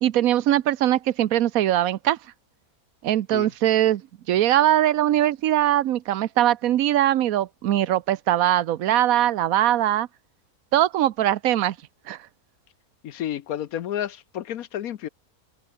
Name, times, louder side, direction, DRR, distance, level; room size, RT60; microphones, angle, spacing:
voice 1, 0.0-2.2 3.0-4.0 4.3-10.1 10.7-11.7 12.1-12.2, right 12 dB, 70° right, 1.1 m, -21 dB
voice 2, 13.0-15.1, left 11 dB, 70° left, 1.2 m, -31 dB
omnidirectional pair, 1.6 m